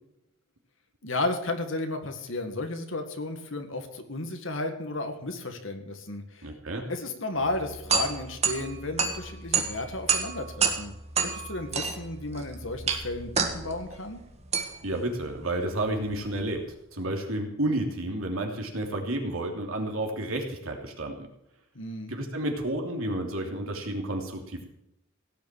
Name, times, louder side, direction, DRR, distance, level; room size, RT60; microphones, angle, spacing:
voice 1, 1.0-6.5 6.9-10.9 11.2-14.2 21.7-22.1, left 2 dB, 65° left, 6 dB, 2.1 m, -33 dB
voice 2, 6.4-6.9 14.8-16.6 16.9-21.3 22.1-24.7, right 1 dB, 80° right, 2 dB, 3.1 m, -31 dB
sound 1, 7.4-16.6, right 5 dB, 30° right, 1.7 m, -30 dB
17.0 x 6.9 x 9.1 m, 0.82 s
head